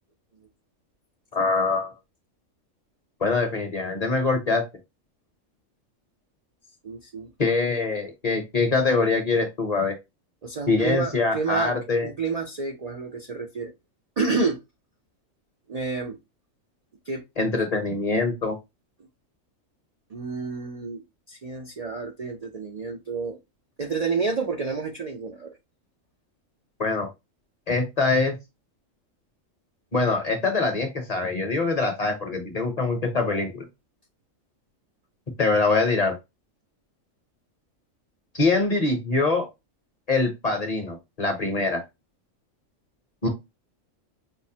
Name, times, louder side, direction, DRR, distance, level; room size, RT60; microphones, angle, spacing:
voice 1, 1.3-1.9 3.2-4.7 7.4-10.0 10.7-12.1 17.4-18.6 26.8-27.1 27.7-28.4 29.9-33.6 35.4-36.1 38.3-39.5 40.1-41.8 43.2-43.3, left 3 dB, 40° left, 0.6 m, -24 dB
voice 2, 6.8-7.3 10.4-11.7 12.0-13.7 14.2-14.6 15.7-16.2 17.1-17.2 20.1-21.0 21.3-23.4 23.8-25.5, right 4 dB, 70° right, 0.3 m, -29 dB
5.2 x 2.1 x 2.7 m
omnidirectional pair, 1.4 m